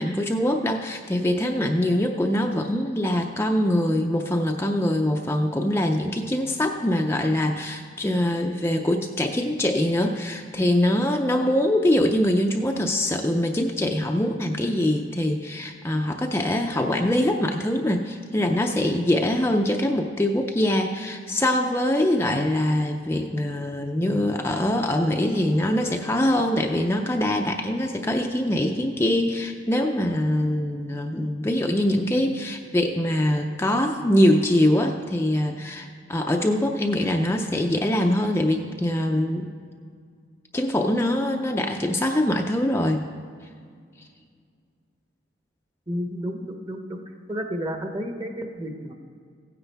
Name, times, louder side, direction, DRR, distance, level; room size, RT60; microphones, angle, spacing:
voice 1, 0.0-39.5 40.5-43.1, left 1 dB, 15° left, 2 dB, 0.5 m, -23 dB
voice 2, 22.2-22.5 45.9-47.0 47.3-48.9, equal, 25° right, 4 dB, 1.1 m, -31 dB
16.0 x 9.7 x 3.5 m, 2.1 s
head